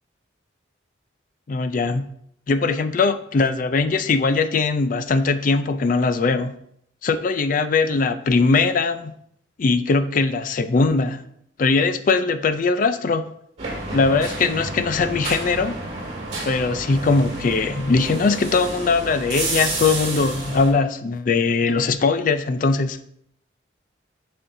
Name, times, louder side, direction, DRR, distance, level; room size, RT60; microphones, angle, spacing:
voice 1, 1.5-2.1 2.5-6.6 7.0-9.1 9.6-11.2 11.6-13.3 13.9-15.8 16.4-23.0, left 4 dB, 45° left, 10 dB, 0.4 m, -20 dB
sound 1, 13.6-20.7, right 2 dB, 35° right, 2.0 m, -30 dB
11.0 x 4.3 x 2.7 m, 0.71 s
head